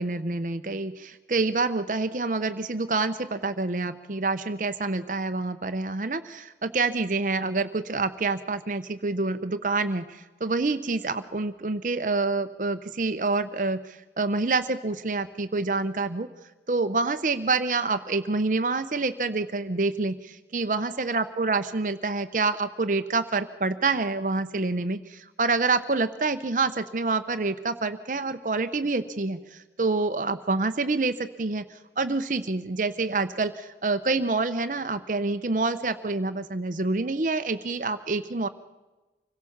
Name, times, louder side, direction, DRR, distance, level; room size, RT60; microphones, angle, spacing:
voice 1, 0.0-16.3 16.7-38.5, right 3 dB, 45° right, 10 dB, 0.8 m, -27 dB
25.5 x 17.0 x 7.2 m, 1.1 s
head